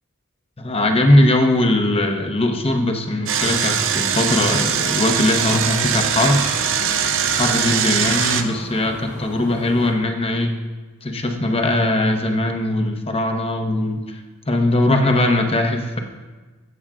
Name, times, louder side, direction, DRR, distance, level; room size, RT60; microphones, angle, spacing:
voice 1, 0.6-6.5 7.3-10.5 11.0-16.0, left 1 dB, 25° left, 4 dB, 0.9 m, -20 dB
sound 1, 3.3-9.9, left 1 dB, 75° left, 2.3 m, -35 dB
Engine, 3.3-8.4, right 8 dB, 60° right, 0.6 m, -21 dB
16.0 x 7.1 x 2.5 m, 1.3 s
head